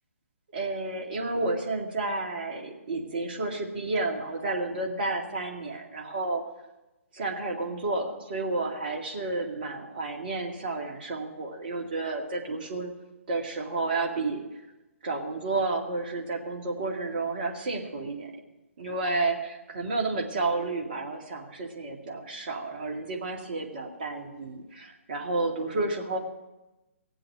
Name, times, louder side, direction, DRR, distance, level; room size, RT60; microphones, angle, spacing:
voice 1, 0.5-6.4 7.1-12.9 13.3-14.4 15.0-18.3 18.8-26.2, right 3 dB, 40° right, 1 dB, 2.2 m, -31 dB
17.5 x 7.9 x 7.5 m, 1.0 s
figure-of-eight pair, 130°, 8 cm